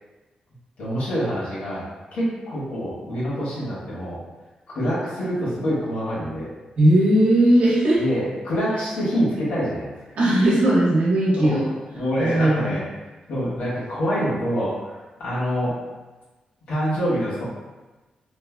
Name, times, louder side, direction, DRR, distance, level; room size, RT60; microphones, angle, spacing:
voice 1, 0.8-1.8 2.1-4.2 4.7-6.5 8.0-9.9 11.4-11.6 11.9-12.8 13.3-15.8 16.7-17.4, equal, 85° left, -9 dB, 1.3 m, -26 dB
voice 2, 6.8-8.0 10.1-11.7 12.2-12.8, right 1 dB, 75° right, -6 dB, 0.9 m, -18 dB
3.1 x 2.1 x 2.2 m, 1.2 s
wide cardioid pair, 125°, 2 cm